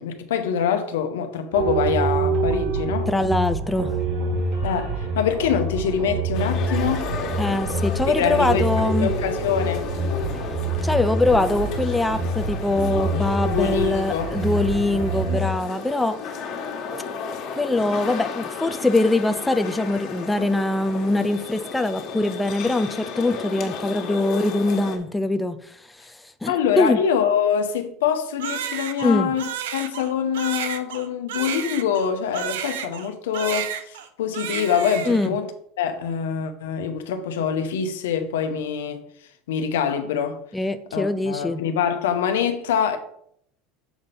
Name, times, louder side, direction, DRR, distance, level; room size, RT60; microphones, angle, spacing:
voice 1, 0.0-3.1 4.6-7.1 8.2-9.9 13.5-14.3 26.5-35.5 35.8-39.0 39.5-40.4 40.9-43.0, left 7 dB, 85° left, 0.9 m, -24 dB
sound 1, 1.5-15.5, right 3 dB, 55° right, 2.2 m, -26 dB
voice 2, 3.1-3.9 7.4-9.1 10.8-16.2 17.5-25.6 26.0-26.2 26.4-27.0 29.0-29.3 35.1-35.3 40.5-41.6, left 2 dB, 10° left, 0.5 m, -23 dB
sound 2, 6.3-25.0, left 5 dB, 55° left, 1.7 m, -33 dB
Crying sobbing, 28.4-33.1 33.3-34.1 34.3-35.3, right 9 dB, 85° right, 0.7 m, -31 dB
7.1 x 4.1 x 5.2 m
supercardioid pair, 100°, 0 cm